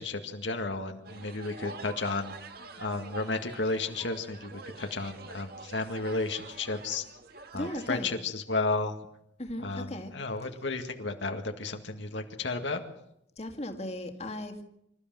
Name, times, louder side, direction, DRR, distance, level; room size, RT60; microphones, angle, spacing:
voice 1, 0.0-2.4 2.8-7.0 7.5-9.0 9.6-12.8, left 3 dB, 90° left, 5 dB, 2.0 m, -33 dB
sound 1, 1.0-8.0, right 3 dB, 60° right, 2.0 m, -46 dB
voice 2, 7.5-8.1 9.4-10.1 13.4-14.6, left 1 dB, 35° left, 5 dB, 2.1 m, -36 dB
26.0 x 13.5 x 7.6 m, 0.78 s
head